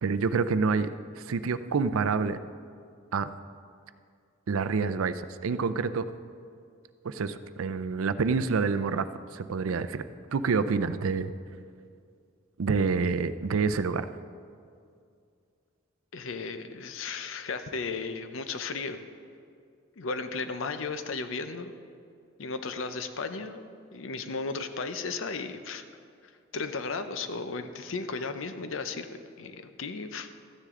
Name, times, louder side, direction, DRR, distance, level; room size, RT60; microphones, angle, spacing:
voice 1, 0.0-2.4 3.1-3.3 4.5-6.0 7.0-10.0 10.3-11.3 12.6-14.1, right 5 dB, 85° right, 12 dB, 0.4 m, -27 dB
voice 2, 16.1-19.0 20.0-21.7 22.4-23.6 23.9-25.8 26.2-29.1 29.4-30.3, left 4 dB, 70° left, 9 dB, 0.6 m, -35 dB
13.5 x 9.8 x 3.7 m, 2.3 s
head